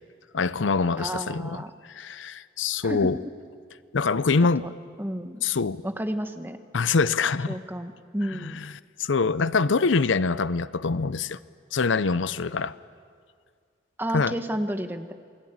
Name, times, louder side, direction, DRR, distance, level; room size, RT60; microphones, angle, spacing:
voice 1, 0.3-1.6 1.9-3.2 3.9-4.7 5.4-5.8 6.7-7.6 8.3-8.7 9.0-11.4 11.7-12.7 14.1-14.3, left 4 dB, 85° left, 16 dB, 0.6 m, -24 dB
voice 2, 1.0-1.7 2.8-3.1 4.6-4.7 5.0-5.4 5.8-6.6 7.5-8.6 14.0-15.1, equal, 10° right, 8 dB, 1.1 m, -31 dB
28.0 x 20.5 x 8.8 m, 2.1 s
head